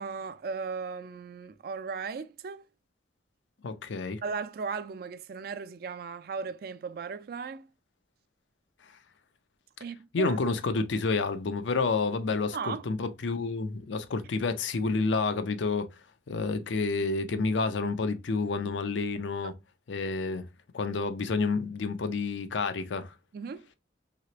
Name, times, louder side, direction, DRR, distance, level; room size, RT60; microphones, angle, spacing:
voice 1, 0.0-2.7 4.2-7.7 9.8-10.4 12.5-12.8 23.3-23.7, right 5 dB, 55° right, 0.3 m, -36 dB
voice 2, 3.6-4.2 10.1-15.9 16.3-19.5 19.9-20.5 20.7-23.1, left 4 dB, 85° left, 0.5 m, -29 dB
3.0 x 2.9 x 2.9 m
head